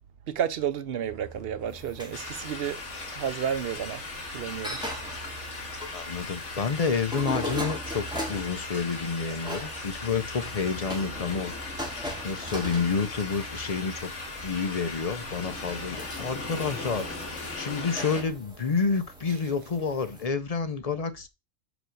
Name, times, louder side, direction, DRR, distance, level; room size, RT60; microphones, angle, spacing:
voice 1, 0.3-2.8 3.1-4.0 4.3-4.8, right 9 dB, 60° right, 0.9 m, -31 dB
Truck, 1.1-17.6, right 2 dB, 35° right, 2.2 m, -48 dB
sound 1, 1.7-20.2, equal, 5° right, 2.2 m, -41 dB
sound 2, 2.1-18.2, left 3 dB, 75° left, 2.2 m, -38 dB
voice 2, 5.9-11.5 12.2-14.1 14.4-21.3, left 5 dB, 40° left, 0.6 m, -29 dB
5.1 x 5.0 x 6.3 m
omnidirectional pair, 1.2 m